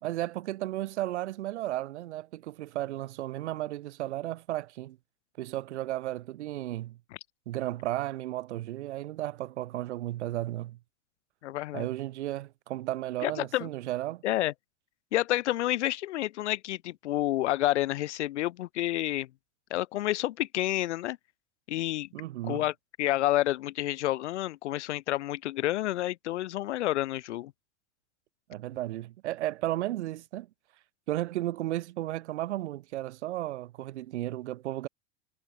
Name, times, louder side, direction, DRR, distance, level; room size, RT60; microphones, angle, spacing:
voice 1, 0.0-5.0 5.4-7.0 7.4-10.8 11.7-14.2 22.1-22.6 28.5-30.5 31.1-34.9, right 15 dB, 75° right, 1.8 m, -34 dB
voice 2, 11.4-11.9 13.2-13.7 14.2-14.5 15.1-19.3 19.7-21.2 21.7-22.1 22.4-27.5, left 15 dB, 80° left, 1.0 m, -29 dB
supercardioid pair, 125°, 34 cm